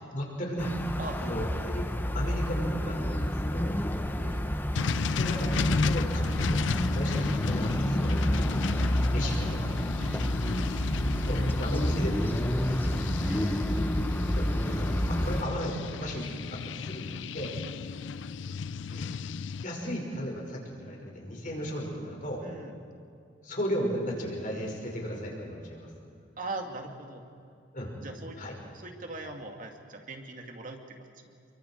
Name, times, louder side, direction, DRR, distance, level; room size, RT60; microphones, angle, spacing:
voice 1, 0.1-0.7 1.2-1.9 2.1-3.8 4.9-6.6 6.9-9.7 10.4-10.6 11.2-13.1 14.3-17.5 18.9-19.1 19.5-22.4 23.4-25.9 27.7-27.9 28.4-28.5, equal, 45° left, -1 dB, 5.8 m, -35 dB
sound 1, 0.6-15.4, equal, 10° left, 0.9 m, -29 dB
voice 2, 1.0-1.4 4.1-4.5 9.2-9.5 10.0-10.4 13.2-13.8 22.4-22.7 26.4-27.2 28.0-28.4 28.7-31.0 31.2-31.4, right 2 dB, 45° right, 3 dB, 2.5 m, -40 dB
sound 2, 4.7-19.6, left 5 dB, 80° left, 0.4 m, -35 dB
29.0 x 23.5 x 4.7 m, 2.5 s
head